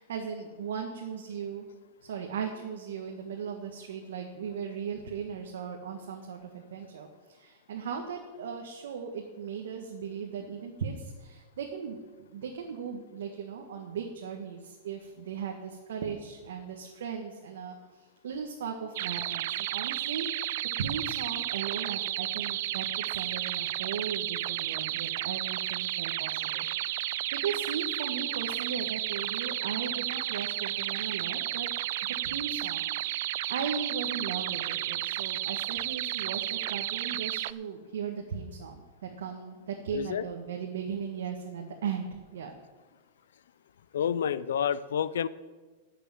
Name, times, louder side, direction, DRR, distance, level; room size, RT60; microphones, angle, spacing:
voice 1, 0.0-1.7 2.0-17.7 18.2-20.5 20.8-22.8 23.1-31.7 32.2-42.5, right 6 dB, 85° right, 2 dB, 1.6 m, -37 dB
sound 1, 19.0-37.5, right 15 dB, 55° right, 0.4 m, -32 dB
voice 2, 39.9-40.3 43.9-45.3, left 8 dB, 90° left, 17 dB, 0.5 m, -29 dB
12.0 x 6.8 x 8.9 m, 1.3 s
supercardioid pair, 160°, 0 cm